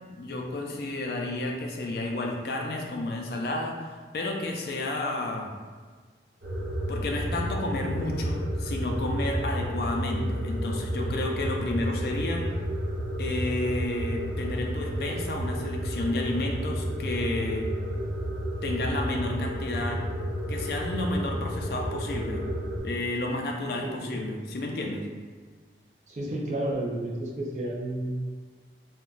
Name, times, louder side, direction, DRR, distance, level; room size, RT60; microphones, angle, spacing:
voice 1, 0.1-5.5 6.9-12.5 13.2-17.7 18.6-20.0 20.5-25.1, left 2 dB, 60° left, 1 dB, 0.4 m, -31 dB
sound 1, 6.4-22.8, equal, 75° right, 0.9 m, -31 dB
voice 2, 26.1-28.2, right 1 dB, 40° right, -3 dB, 0.5 m, -31 dB
3.7 x 2.2 x 2.4 m, 1.5 s
head